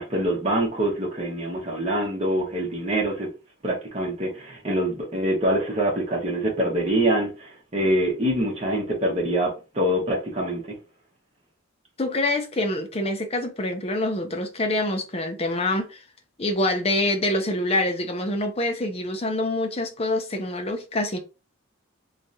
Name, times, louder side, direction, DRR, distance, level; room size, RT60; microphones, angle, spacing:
voice 1, 0.0-3.3 3.6-10.6, right 1 dB, 30° right, 1.3 m, -25 dB
voice 2, 12.0-16.0 16.4-21.2, left 1 dB, 30° left, 0.6 m, -26 dB
3.3 x 3.2 x 2.7 m
head